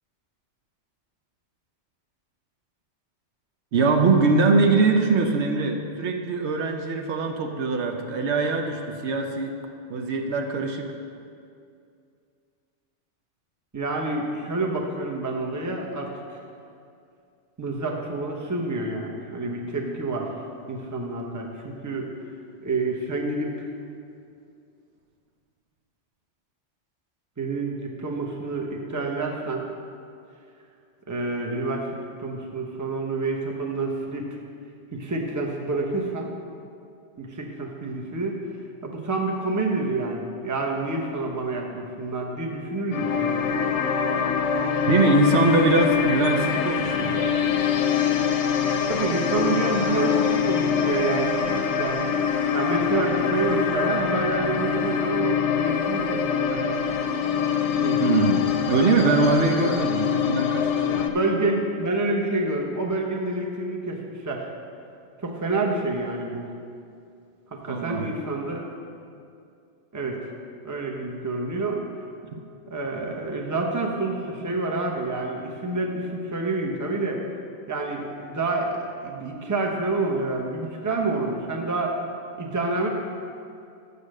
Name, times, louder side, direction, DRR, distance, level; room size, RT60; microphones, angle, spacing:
voice 1, 3.7-9.6 9.9-10.9 44.9-47.3 58.0-58.4 58.7-61.2 67.7-68.2, right 3 dB, 70° right, 2 dB, 1.0 m, -22 dB
voice 2, 13.7-16.4 17.6-20.3 20.7-22.1 22.6-23.7 27.4-29.7 31.1-31.8 32.2-34.3 34.9-36.3 37.2-38.4 38.8-43.4 48.9-52.0 52.5-56.2 56.5-56.6 57.8-58.0 61.1-64.4 65.2-66.5 67.5-68.7 69.9-70.2 70.6-71.8 72.7-77.2 77.7-82.0 82.4-82.9, right 2 dB, 15° right, 0 dB, 0.8 m, -28 dB
sound 1, 42.9-61.1, left 7 dB, 80° left, 1.0 m, -24 dB
7.0 x 6.9 x 6.5 m, 2.4 s
omnidirectional pair, 1.2 m